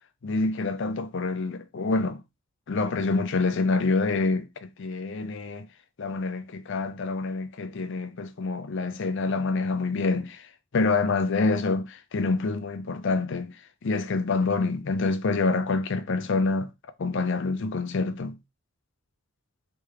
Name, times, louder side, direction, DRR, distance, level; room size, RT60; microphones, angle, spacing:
voice 1, 0.2-2.2 2.7-5.7 6.0-10.5 10.7-16.7 17.0-18.4, left 3 dB, 60° left, 0.5 m, -27 dB
3.4 x 3.2 x 3.3 m
head